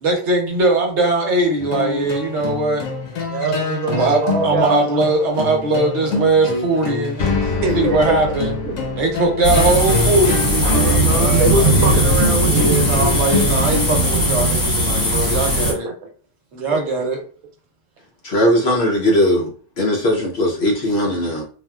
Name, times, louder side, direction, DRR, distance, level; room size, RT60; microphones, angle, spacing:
voice 1, 0.0-2.9 3.9-7.5 7.7-8.6 9.0-12.0 12.5-15.9 16.5-17.2, right 2 dB, 60° right, 1.0 m, -20 dB
sound 1, 1.6-13.8, left 4 dB, 75° left, 1.1 m, -25 dB
voice 2, 3.3-4.9 7.6-8.2 8.6-8.8 10.6-12.7 15.4-15.9 16.7-16.8, right 3 dB, 90° right, 1.1 m, -23 dB
sound 2, 9.4-15.7, right 1 dB, 15° left, 0.8 m, -18 dB
voice 3, 18.2-19.5 19.8-21.4, equal, 55° left, 0.8 m, -18 dB
3.4 x 2.3 x 2.3 m
omnidirectional pair, 1.5 m